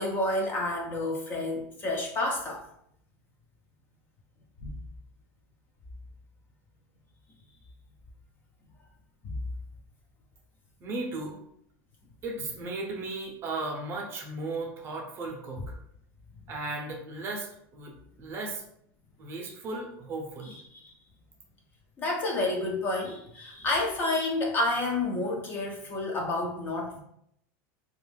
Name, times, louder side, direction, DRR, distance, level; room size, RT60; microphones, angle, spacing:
voice 1, 0.0-2.6 4.6-4.7 9.2-9.3 20.4-20.9 22.0-27.0, left 2 dB, 25° left, 0 dB, 0.4 m, -30 dB
voice 2, 10.8-11.4 12.2-15.7 16.5-18.6 19.2-20.6, right 2 dB, 30° right, 1 dB, 0.5 m, -36 dB
2.4 x 2.2 x 3.2 m, 0.71 s
supercardioid pair, 165°, 8 cm